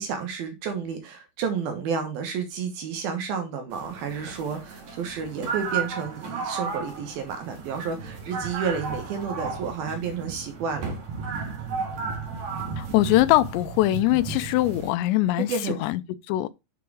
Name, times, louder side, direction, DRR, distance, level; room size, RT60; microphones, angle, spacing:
voice 1, 0.0-10.9 15.3-15.8, right 6 dB, 70° right, 2.6 m, -31 dB
sound 1, 3.7-14.9, right 5 dB, 50° right, 2.6 m, -34 dB
voice 2, 12.8-16.0 16.3-16.5, left 16 dB, 85° left, 2.8 m, -22 dB
7.0 x 4.6 x 4.7 m
omnidirectional pair, 5.0 m